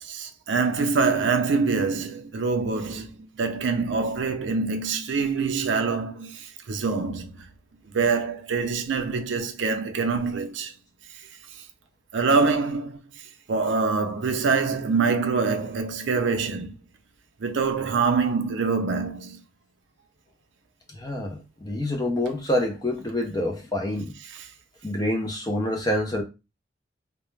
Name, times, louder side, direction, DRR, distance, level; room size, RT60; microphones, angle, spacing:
voice 1, 0.0-7.3 7.9-10.7 12.1-13.0 13.5-16.7 17.4-19.4 24.3-24.5, right 4 dB, 80° right, 0.4 m, -25 dB
voice 2, 21.0-24.1 24.8-26.2, left 1 dB, 20° left, 0.5 m, -27 dB
2.3 x 2.1 x 3.1 m
head